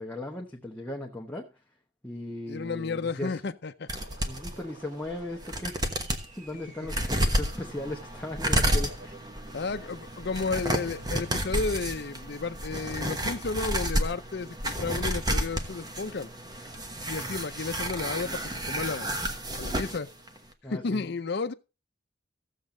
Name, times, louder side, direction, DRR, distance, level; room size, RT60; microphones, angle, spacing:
voice 1, 0.0-1.5 2.0-3.4 4.3-5.8 6.3-9.1 17.2-17.4 20.6-21.1, left 1 dB, 10° left, 1.1 m, -37 dB
voice 2, 2.5-3.9 9.5-16.3 17.1-19.1 19.6-20.1 20.7-21.5, left 4 dB, 60° left, 0.6 m, -32 dB
sound 1, 3.9-4.5 5.1-5.2 5.4-6.3 6.9-20.0 20.3-20.4, right 1 dB, 20° right, 1.1 m, -31 dB
sound 2, 4.0-11.4, right 2 dB, 40° right, 5.3 m, -51 dB
15.0 x 7.3 x 3.8 m
head